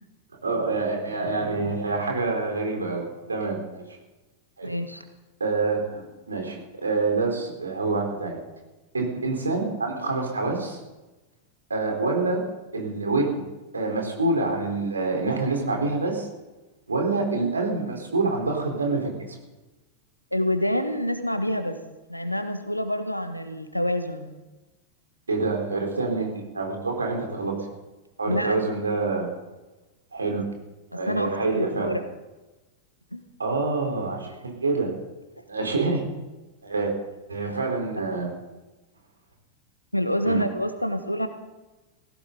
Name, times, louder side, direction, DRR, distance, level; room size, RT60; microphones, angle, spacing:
voice 1, 0.4-3.8 4.6-4.7 5.4-8.4 8.9-10.8 11.7-13.4 13.7-16.3 16.9-19.4 25.3-27.7 28.2-29.3 30.1-30.4 30.9-32.0 33.4-34.9 35.5-36.0 36.6-36.9 37.3-38.3 40.2-40.4, right 3 dB, 75° right, 1 dB, 4.2 m, -26 dB
voice 2, 4.6-5.0 20.3-21.8 22.1-24.3 28.2-28.6 31.1-32.0 33.1-33.2 37.4-37.6 39.9-41.3, equal, 90° left, 9 dB, 1.5 m, -27 dB
19.0 x 16.5 x 4.0 m, 1.1 s
figure-of-eight pair, 90°, 0 cm